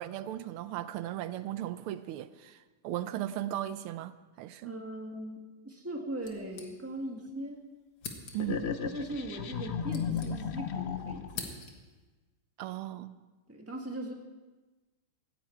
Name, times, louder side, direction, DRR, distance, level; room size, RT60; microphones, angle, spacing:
voice 1, 0.0-4.8 8.3-8.7 12.6-13.2, right 13 dB, 85° right, 1.5 m, -37 dB
voice 2, 4.6-7.6 8.9-11.6 13.5-14.1, right 1 dB, 5° right, 1.6 m, -39 dB
sound 1, 6.2-7.2 7.5-7.6 8.0-8.7 9.5-10.8 11.0-12.0, left 4 dB, 65° left, 2.3 m, -45 dB
sound 2, 8.4-11.5, left 7 dB, 90° left, 0.5 m, -34 dB
17.5 x 14.5 x 4.6 m
omnidirectional pair, 2.3 m